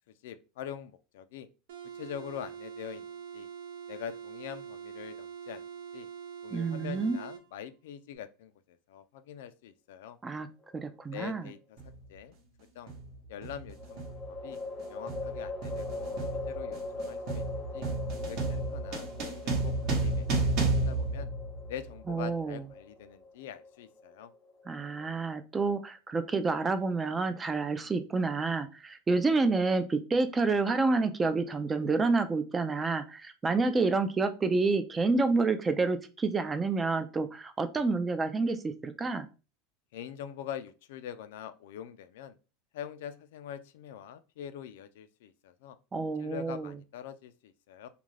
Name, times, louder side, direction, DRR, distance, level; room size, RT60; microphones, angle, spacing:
voice 1, 0.2-1.5 1.9-3.5 3.9-5.7 5.9-6.1 6.4-10.2 11.1-11.6 12.1-12.4 12.7-12.9 13.3-14.6 14.9-17.9 18.2-20.5 20.8-21.3 21.7-24.3 39.9-42.4 42.7-45.8 46.2-47.9, left 9 dB, 75° left, 0.3 m, -44 dB
sound 1, 1.7-7.4, right 7 dB, 85° right, 0.6 m, -44 dB
voice 2, 6.5-7.2 10.2-10.5 10.7-11.4 22.1-22.6 24.7-39.3 45.9-46.7, right 3 dB, 15° right, 0.3 m, -29 dB
sound 2, 10.6-11.5 13.7-25.0, left 3 dB, 20° left, 0.6 m, -41 dB
sound 3, 11.8-11.9 12.9-13.1 13.4-22.0, right 2 dB, 50° right, 0.9 m, -32 dB
2.4 x 2.2 x 3.1 m
supercardioid pair, 130°, 0 cm